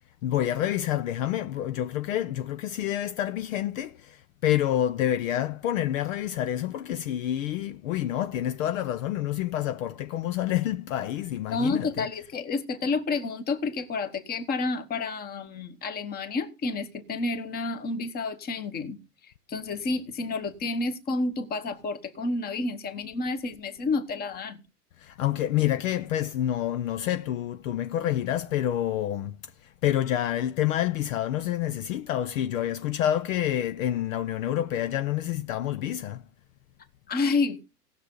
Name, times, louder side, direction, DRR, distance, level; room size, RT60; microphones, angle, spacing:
voice 1, 0.2-12.1 25.0-29.4 29.6-36.2, left 12 dB, 55° left, 0.7 m, -28 dB
voice 2, 11.5-19.0 19.2-24.6 37.1-37.6, left 3 dB, 20° left, 1.2 m, -30 dB
18.0 x 6.7 x 3.9 m
supercardioid pair, 145°, 47 cm